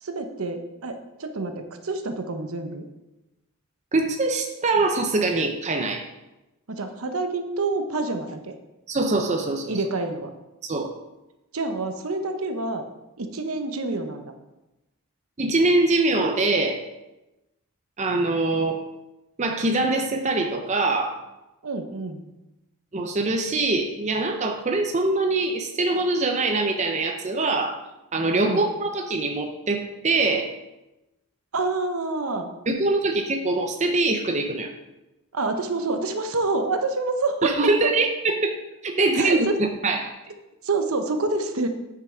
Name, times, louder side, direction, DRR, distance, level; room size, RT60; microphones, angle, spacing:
voice 1, 0.0-2.8 6.7-8.5 9.7-10.3 11.5-12.8 13.2-14.2 21.6-22.2 28.4-28.6 31.5-32.5 35.3-37.5 37.8-37.9 39.1-39.6 40.6-41.7, right 3 dB, 70° right, 6 dB, 0.9 m, -27 dB
voice 2, 3.9-6.0 8.9-9.7 10.7-10.9 15.4-16.8 18.0-18.8 19.4-21.2 22.9-27.8 28.1-30.5 32.7-34.7 37.4-38.5 38.8-39.5 39.8-40.1, right 2 dB, 30° right, 3 dB, 0.6 m, -23 dB
9.3 x 5.9 x 4.5 m, 0.99 s
head